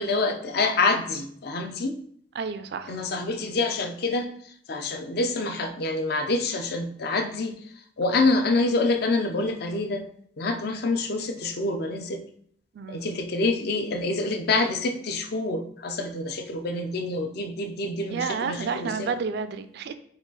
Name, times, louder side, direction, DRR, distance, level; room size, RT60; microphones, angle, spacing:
voice 1, 0.0-2.0 2.9-4.3 4.7-7.5 8.0-10.0 10.4-12.2 12.9-19.1, left 3 dB, 60° left, 6 dB, 0.5 m, -26 dB
voice 2, 2.4-3.0 12.7-13.1 18.1-19.9, right 5 dB, 60° right, 11 dB, 0.3 m, -30 dB
4.9 x 2.4 x 3.9 m, 0.63 s
head